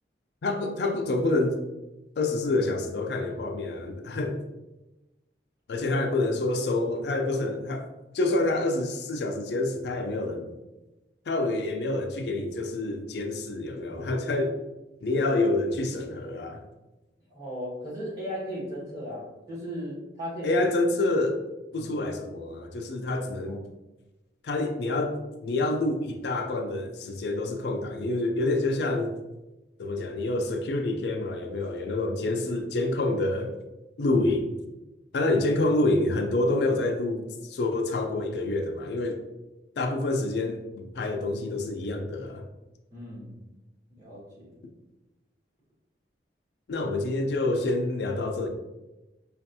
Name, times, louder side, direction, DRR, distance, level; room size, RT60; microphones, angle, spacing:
voice 1, 0.4-1.6 2.2-4.4 5.7-7.9 8.1-10.5 11.3-14.6 15.0-16.6 20.4-21.4 21.7-23.6 24.4-29.1 29.8-33.5 34.0-34.5 35.1-39.2 39.8-42.5 46.7-48.5, left 2 dB, 70° left, 4 dB, 0.4 m, -27 dB
voice 2, 17.3-20.7 21.7-22.0 23.5-23.6 34.0-34.2 35.3-35.4 42.9-43.4 43.9-44.5, equal, 20° right, -7 dB, 1.4 m, -37 dB
5.2 x 2.5 x 2.6 m, 1.0 s
head